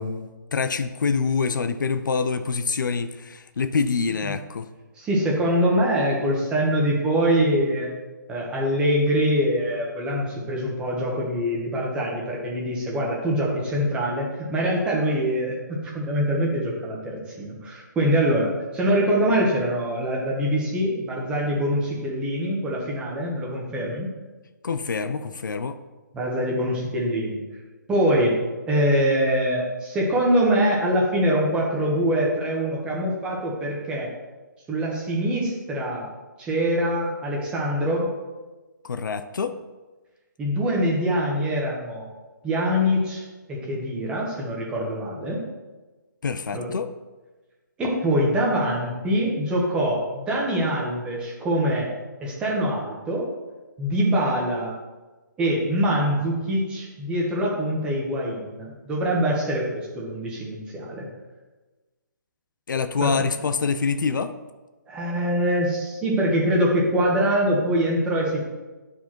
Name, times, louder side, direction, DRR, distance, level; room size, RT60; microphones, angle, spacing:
voice 1, 0.0-4.7 24.6-25.8 38.8-39.5 46.2-46.9 62.7-64.3, left 5 dB, 70° left, 10 dB, 0.6 m, -26 dB
voice 2, 5.0-7.9 8.3-24.1 26.1-27.4 27.9-28.4 28.7-34.1 34.7-36.1 36.4-38.1 40.4-42.1 42.4-45.4 46.5-46.7 47.8-51.9 52.2-53.3 53.8-54.7 55.4-61.1 63.0-63.1 64.9-68.5, equal, 10° right, -3 dB, 1.3 m, -24 dB
9.3 x 4.9 x 4.5 m, 1.2 s
hypercardioid pair, 160°, 11 cm